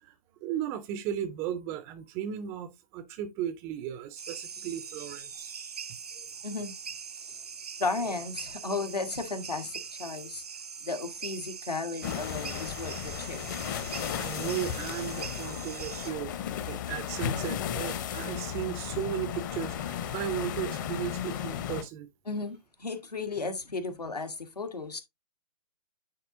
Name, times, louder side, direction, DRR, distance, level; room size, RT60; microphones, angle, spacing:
voice 1, 0.4-5.5 6.2-6.3 14.2-16.3 16.7-22.1, right 10 dB, 15° right, 0.4 m, -35 dB
sound 1, 4.2-16.1, right 6 dB, 75° right, 0.5 m, -42 dB
voice 2, 6.4-6.7 7.3-7.4 7.8-10.4 10.8-13.4 22.2-25.0, left 3 dB, 80° left, 1.6 m, -34 dB
sound 2, 12.0-21.8, left 9 dB, 30° left, 0.8 m, -35 dB
9.5 x 4.1 x 2.6 m
figure-of-eight pair, 130°, 20 cm